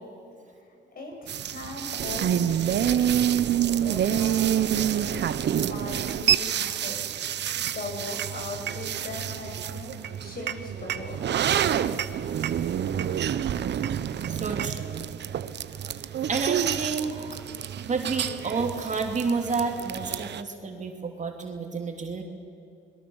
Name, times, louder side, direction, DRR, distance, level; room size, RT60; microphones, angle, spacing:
voice 1, 0.9-3.1 3.7-5.0 5.6-7.0 7.7-9.9 10.2-11.8, left 2 dB, 50° left, 1 dB, 7.4 m, -39 dB
sound 1, 1.3-20.4, right 10 dB, 60° right, 1.0 m, -28 dB
voice 2, 14.3-15.1 16.3-17.4 17.8-22.2, right 4 dB, 40° right, 3 dB, 3.0 m, -30 dB
27.0 x 22.0 x 7.2 m, 2.7 s
cardioid pair, 90°, 20 cm